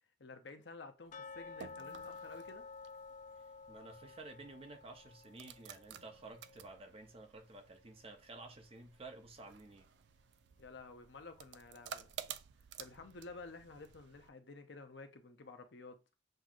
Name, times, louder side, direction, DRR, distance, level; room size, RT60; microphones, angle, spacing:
voice 1, 0.2-2.7 10.6-12.1 12.8-16.0, left 3 dB, 65° left, 0.7 m, -52 dB
sound 1, 1.1-8.0 8.2-8.3 8.9-9.0 9.5-9.6, left 4 dB, 40° left, 0.3 m, -53 dB
sound 2, 1.2-14.3, right 8 dB, 65° right, 0.3 m, -54 dB
voice 2, 3.7-9.9, right 2 dB, 30° right, 0.7 m, -52 dB
7.6 x 2.7 x 2.4 m
head